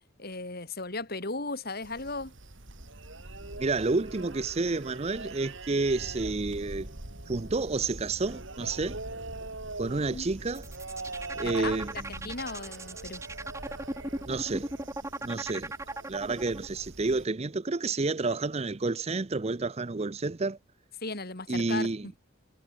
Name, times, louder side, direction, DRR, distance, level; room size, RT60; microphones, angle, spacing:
voice 1, 0.2-2.3 10.1-10.3 11.4-11.8 12.1-13.2 21.0-22.2, left 3 dB, 45° left, 2.8 m, -36 dB
sound 1, 1.8-17.2, right 2 dB, 60° right, 3.5 m, -42 dB
voice 2, 3.6-6.9 7.3-9.0 9.8-10.6 11.4-12.3 14.3-14.7 15.2-15.7 16.1-20.6 21.5-22.0, right 3 dB, 30° right, 0.6 m, -30 dB
sound 2, 10.4-16.7, right 1 dB, 15° right, 3.2 m, -37 dB
head